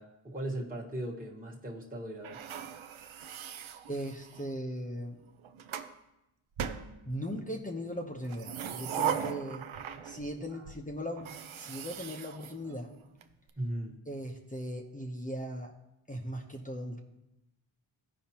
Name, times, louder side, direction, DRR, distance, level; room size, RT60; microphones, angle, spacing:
voice 1, 0.0-2.4 10.4-10.6 13.6-14.0, right 1 dB, 15° right, -4 dB, 1.5 m, -38 dB
sound 1, 2.2-4.5 5.3-5.9 6.6-7.5 8.2-10.4 10.7-10.8 11.2-13.2, right 8 dB, 70° right, 0.6 m, -38 dB
voice 2, 3.9-5.2 7.1-9.7 10.0-12.9 14.1-15.7 16.1-17.0, equal, 15° left, 0 dB, 0.8 m, -38 dB
14.5 x 4.9 x 2.9 m, 0.91 s
cardioid pair, 60°, 49 cm